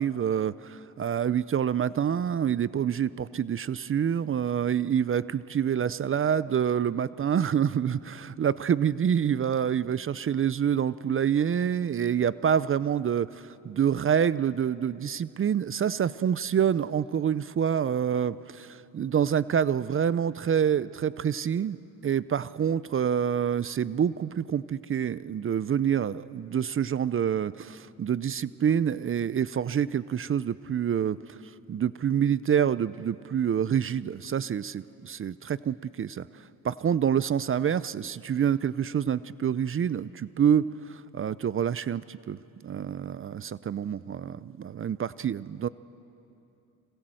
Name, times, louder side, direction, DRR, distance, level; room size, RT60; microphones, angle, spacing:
voice 1, 0.0-21.8 22.0-31.2 31.7-36.3 36.6-42.4 42.6-45.7, right 8 dB, 35° right, 17 dB, 0.6 m, -27 dB
28.0 x 26.0 x 7.8 m, 2.8 s
supercardioid pair, 80°, 36 cm